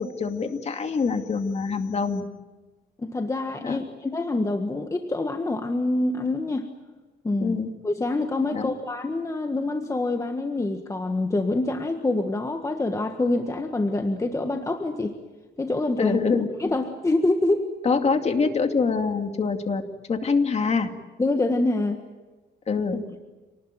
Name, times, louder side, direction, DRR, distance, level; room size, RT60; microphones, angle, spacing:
voice 1, 0.0-2.2 3.6-3.8 7.4-7.7 8.5-8.7 16.0-16.5 17.8-19.8 20.1-20.9 22.7-23.2, left 4 dB, 35° left, 5 dB, 2.4 m, -25 dB
voice 2, 3.0-6.6 7.2-7.6 7.8-15.2 15.6-16.2 16.6-17.7 21.2-22.0, left 2 dB, 15° left, 5 dB, 1.5 m, -26 dB
28.5 x 19.5 x 9.2 m, 1.2 s
cardioid pair, 135°, 19 cm